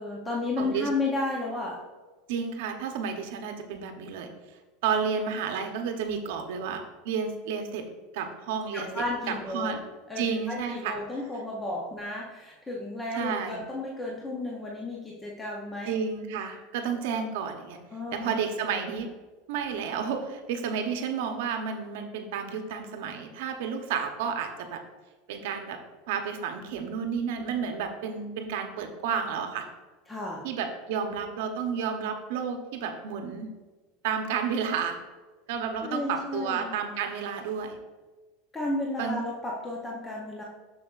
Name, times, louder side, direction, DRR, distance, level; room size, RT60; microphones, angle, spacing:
voice 1, 0.0-1.8 8.7-9.8 10.1-16.0 17.9-18.3 30.1-30.4 35.8-36.8 38.5-40.4, left 2 dB, 10° left, -3 dB, 0.6 m, -33 dB
voice 2, 0.6-0.9 2.3-4.3 4.8-7.9 8.1-9.8 10.2-10.9 13.1-13.6 15.8-17.8 18.1-19.1 19.5-24.8 25.3-25.8 26.1-29.7 30.4-33.5 34.0-35.0 35.5-37.8 39.0-39.3, right 6 dB, 70° right, 5 dB, 0.8 m, -31 dB
7.3 x 6.1 x 2.4 m, 1.3 s
supercardioid pair, 155°, 0 cm